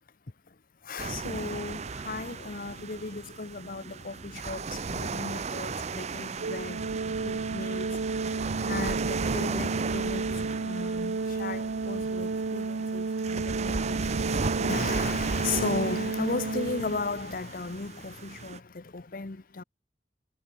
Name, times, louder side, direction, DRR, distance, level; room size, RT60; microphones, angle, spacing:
voice 1, 0.8-6.9 7.2-8.0 8.6-19.6, left 3 dB, 50° left, 0.8 m, -36 dB
sound 1, 1.0-18.6, right 4 dB, 40° right, 0.6 m, -35 dB
Organ, 6.4-17.3, right 4 dB, 85° right, 0.6 m, -32 dB
head